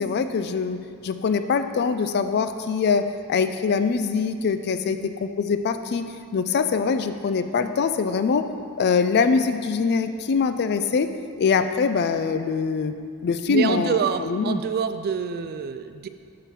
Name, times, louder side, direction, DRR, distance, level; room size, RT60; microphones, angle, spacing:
voice 1, 0.0-6.0 6.3-8.5 8.8-11.1 11.4-12.9 13.2-14.6, left 5 dB, 50° left, 9 dB, 0.3 m, -23 dB
voice 2, 13.5-16.1, right 6 dB, 45° right, 10 dB, 0.3 m, -27 dB
8.1 x 3.8 x 5.7 m, 2.3 s
head